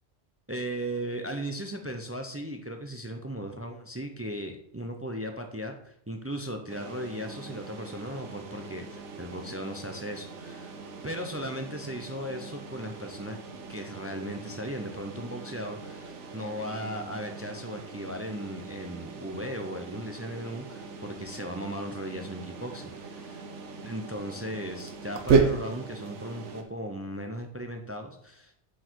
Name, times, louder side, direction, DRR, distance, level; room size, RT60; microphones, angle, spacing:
voice 1, 0.5-10.8 11.0-13.4 13.7-23.4 23.8-28.6, equal, 20° right, 5 dB, 0.4 m, -37 dB
sound 1, 6.7-26.6, right 5 dB, 80° right, 1.2 m, -35 dB
7.8 x 4.7 x 4.5 m, 0.68 s
omnidirectional pair, 1.2 m